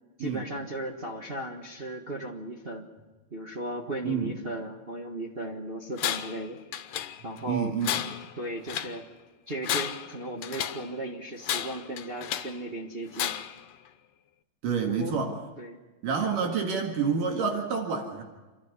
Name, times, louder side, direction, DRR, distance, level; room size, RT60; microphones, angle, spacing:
voice 1, 0.2-2.8 3.3-6.6 7.2-7.7 8.4-9.0 9.5-13.3 15.0-15.1 15.6-15.8, right 1 dB, 45° right, 0 dB, 0.7 m, -36 dB
Tools, 6.0-6.4 6.7-7.4 7.8-9.0 9.5-10.9 11.4-12.6 13.1-13.6, left 11 dB, 80° left, 2.5 m, -32 dB
voice 2, 7.5-7.9 14.6-15.4 16.0-18.2, right 6 dB, 75° right, 2 dB, 3.6 m, -28 dB
28.5 x 12.0 x 9.7 m, 1.2 s
omnidirectional pair, 3.8 m